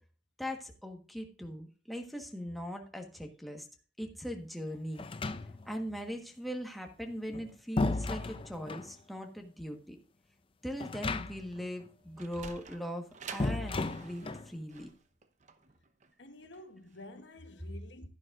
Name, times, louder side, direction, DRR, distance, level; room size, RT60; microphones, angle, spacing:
voice 1, 0.4-3.7 4.0-5.1 5.6-10.0 10.6-14.9, equal, ahead, 1.3 m, -40 dB
sound 1, 5.0-5.8 7.1-8.9 10.8-11.6 11.9-12.0 13.4-14.5, left 2 dB, 30° left, 0.5 m, -34 dB
Sliding door, 11.9-17.1, right 5 dB, 40° right, 0.9 m, -49 dB
voice 2, 16.2-18.2, left 1 dB, 70° left, 1.1 m, -50 dB
11.5 x 10.5 x 2.5 m
head